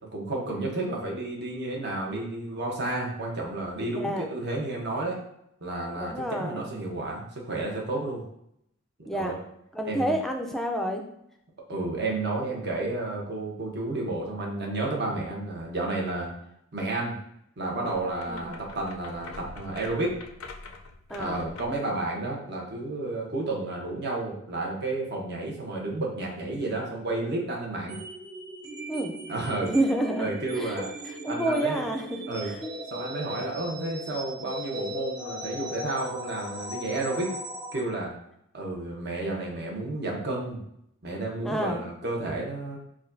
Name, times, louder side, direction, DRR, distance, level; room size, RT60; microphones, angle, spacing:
voice 1, 0.1-5.2 5.6-8.2 9.0-9.4 9.8-10.1 11.7-16.3 16.7-17.2 17.6-20.1 21.2-28.0 29.3-29.7 30.2-30.9 31.3-31.8 32.3-32.5 32.9-37.3 37.7-38.1 38.5-40.6 41.0-42.8, right 2 dB, 55° right, -1 dB, 0.9 m, -31 dB
voice 2, 3.9-4.3 6.0-6.7 9.1-9.3 9.7-11.0 18.3-18.6 21.1-21.4 28.9-29.1 29.6-30.3 30.6-32.7 33.9-34.0 41.4-41.9, right 1 dB, ahead, 1 dB, 0.4 m, -29 dB
sound 1, 17.8-21.9, left 3 dB, 70° left, 0.4 m, -45 dB
sound 2, 27.9-37.8, equal, 20° right, 0.8 m, -38 dB
5.0 x 2.3 x 2.6 m, 0.74 s
head